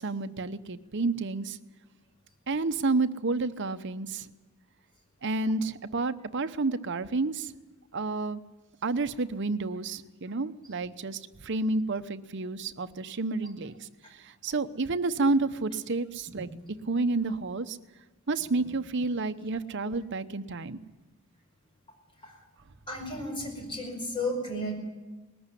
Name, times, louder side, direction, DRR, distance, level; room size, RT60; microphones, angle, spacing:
voice 1, 0.0-1.6 2.5-4.3 5.2-7.5 7.9-8.4 8.8-13.9 14.2-16.5 16.9-17.8 18.3-20.8, right 3 dB, 55° right, 10 dB, 0.8 m, -30 dB
voice 2, 22.9-24.7, left 1 dB, 25° left, 2 dB, 5.3 m, -33 dB
20.0 x 14.0 x 9.9 m, 1.2 s
head